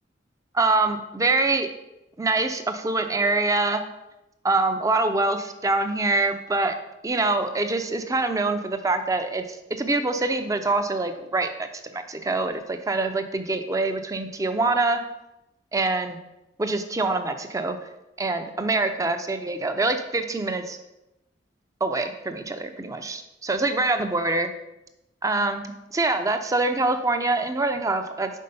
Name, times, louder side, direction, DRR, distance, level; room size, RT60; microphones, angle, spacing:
voice 1, 0.5-1.7 2.2-3.8 4.4-6.8 7.0-11.7 11.9-15.0 15.7-16.2 16.6-17.8 18.2-20.8 21.8-24.5 25.2-28.3, right 2 dB, 20° right, 7 dB, 0.5 m, -25 dB
5.4 x 4.2 x 5.4 m, 0.93 s
head